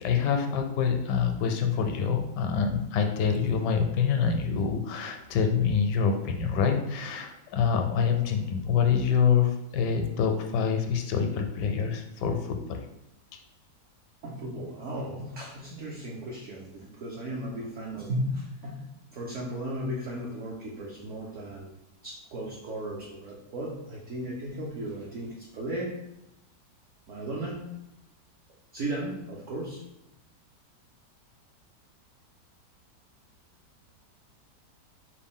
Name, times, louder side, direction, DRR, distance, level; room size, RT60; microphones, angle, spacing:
voice 1, 0.0-12.8 13.3-13.4, left 6 dB, 80° left, 4 dB, 1.2 m, -26 dB
voice 2, 14.2-18.8 19.1-21.7 22.0-26.0 27.1-27.7 28.7-29.8, right 1 dB, 65° right, -4 dB, 0.8 m, -35 dB
4.9 x 2.2 x 3.6 m, 0.86 s
omnidirectional pair, 1.8 m